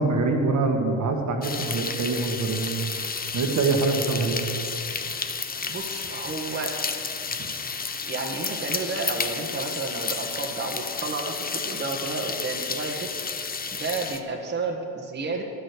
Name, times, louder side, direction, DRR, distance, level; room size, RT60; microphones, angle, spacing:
voice 1, 0.0-2.9 3.3-4.4, right 3 dB, 45° right, 3 dB, 1.5 m, -24 dB
sound 1, 1.4-14.2, left 5 dB, 20° left, 0.8 m, -31 dB
voice 2, 5.6-6.8 8.1-13.2 13.7-15.4, right 3 dB, 25° right, 0 dB, 1.5 m, -31 dB
11.0 x 6.4 x 8.2 m, 2.7 s
supercardioid pair, 85°, 41 cm